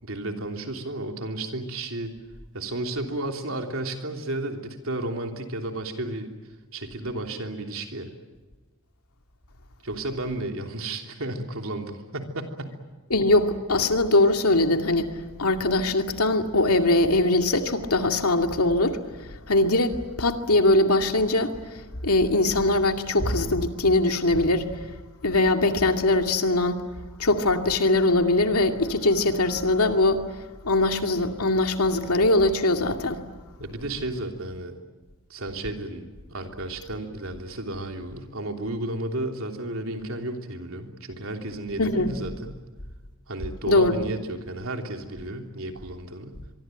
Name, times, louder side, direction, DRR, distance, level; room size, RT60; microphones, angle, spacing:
voice 1, 0.0-2.1 2.5-6.3 6.7-8.1 9.8-12.8 33.6-34.8 35.3-42.6 43.3-46.3, right 2 dB, 70° right, 3.2 m, -33 dB
voice 2, 13.1-15.1 15.4-19.0 19.5-24.7 25.2-26.8 27.2-30.2 30.6-33.2 41.8-42.1 43.7-43.9, left 2 dB, 90° left, 2.3 m, -21 dB
24.0 x 24.0 x 9.2 m
head